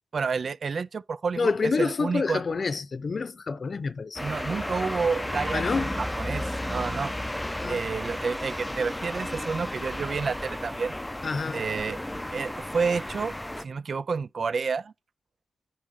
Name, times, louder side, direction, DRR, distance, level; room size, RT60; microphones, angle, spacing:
voice 1, 0.1-2.4 4.2-7.1 7.7-10.9 11.5-12.0 12.3-14.9, right 5 dB, 70° right, 0.3 m, -30 dB
voice 2, 1.4-4.2 5.5-6.0 7.6-7.8 11.2-11.6, left 4 dB, 60° left, 0.7 m, -28 dB
sound 1, 4.2-13.6, left 1 dB, 15° left, 0.5 m, -33 dB
10.0 x 5.4 x 3.2 m
cardioid pair, 45°, 0 cm